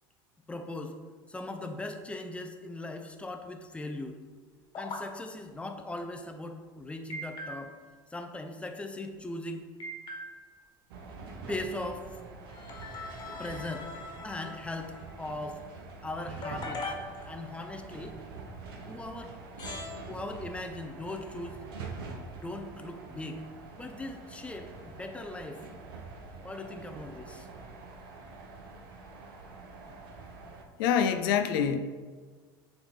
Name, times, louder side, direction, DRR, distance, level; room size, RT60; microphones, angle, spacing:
voice 1, 0.5-1.0 1.3-4.2 4.8-7.7 8.1-9.6 11.5-12.2 13.4-13.9 14.2-15.6 16.0-16.9 17.3-18.2 18.9-19.4 20.1-21.6 22.1-23.4 23.8-25.6 26.4-27.5, left 2 dB, 10° left, 5 dB, 0.7 m, -39 dB
sound 1, 4.7-5.0 7.1-7.9 9.8-10.6 12.5-15.1 16.4-17.7 19.0-19.1 19.6-19.9, left 2 dB, 40° left, 1.6 m, -41 dB
sound 2, 10.9-30.6, right 3 dB, 80° right, 0.9 m, -45 dB
voice 2, 30.8-31.8, left 8 dB, 75° left, 8 dB, 0.5 m, -25 dB
7.8 x 3.5 x 4.1 m, 1.5 s
hypercardioid pair, 90°, 12 cm